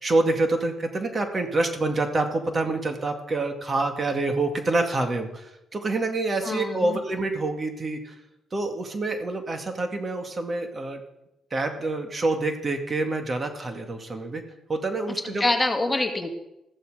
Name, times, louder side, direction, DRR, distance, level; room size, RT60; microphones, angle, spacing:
voice 1, 0.0-8.1 8.5-11.0 11.5-14.4 14.7-15.5, right 2 dB, 35° right, 5 dB, 2.2 m, -27 dB
voice 2, 6.4-7.0 15.2-16.3, left 2 dB, 20° left, 4 dB, 2.2 m, -25 dB
14.5 x 14.0 x 5.1 m, 0.89 s
cardioid pair, 90°, 0 cm